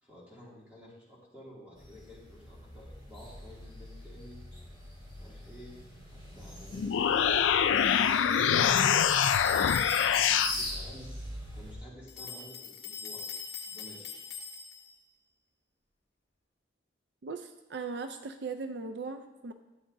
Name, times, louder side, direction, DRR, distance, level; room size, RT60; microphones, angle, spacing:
voice 1, 0.0-4.4 5.1-5.8 6.1-7.6 8.6-11.1 11.5-13.3 13.7-14.2, equal, 10° right, -6 dB, 2.4 m, -51 dB
sound 1, 1.8-11.7, left 1 dB, 25° right, 3.4 m, -42 dB
sound 2, 6.7-10.5, left 8 dB, 90° left, 0.4 m, -25 dB
sound 3, 8.7-10.6 12.1-15.0, left 6 dB, 60° left, 1.5 m, -41 dB
voice 2, 17.2-19.5, right 4 dB, 65° right, 7 dB, 0.4 m, -38 dB
12.5 x 8.5 x 2.6 m, 1.1 s
head